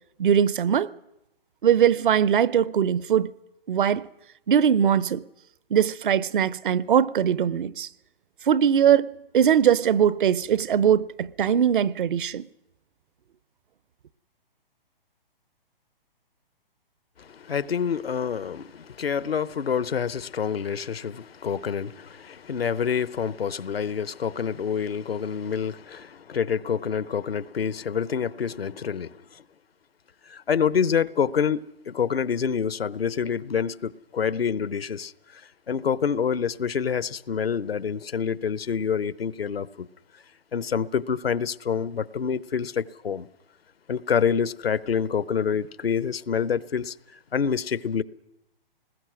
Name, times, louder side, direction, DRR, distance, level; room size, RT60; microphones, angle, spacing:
voice 1, 0.2-0.9 1.6-3.3 3.7-4.1 4.5-5.2 5.7-7.9 8.4-12.4, right 8 dB, 60° right, 0.8 m, -21 dB
voice 2, 17.2-29.4 30.3-35.4 35.7-39.7 40.5-43.3 43.9-46.9 47.3-48.0, left 7 dB, 85° left, 0.9 m, -27 dB
29.0 x 20.0 x 6.2 m
hypercardioid pair, 140°, 29 cm